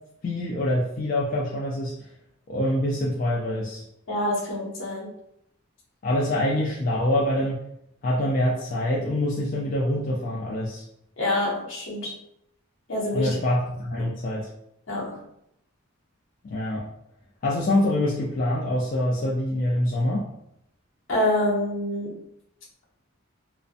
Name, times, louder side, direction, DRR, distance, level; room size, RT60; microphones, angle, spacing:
voice 1, 0.2-2.1 2.5-3.8 6.0-7.6 8.0-10.8 13.1-14.5 16.4-16.9 17.4-20.3, left 1 dB, 40° left, -5 dB, 0.3 m, -25 dB
voice 2, 4.1-5.1 11.2-12.1 12.9-13.4 14.0-14.1 14.9-15.2 21.1-22.2, left 1 dB, 65° left, -4 dB, 0.8 m, -26 dB
2.4 x 2.1 x 2.6 m, 0.78 s
head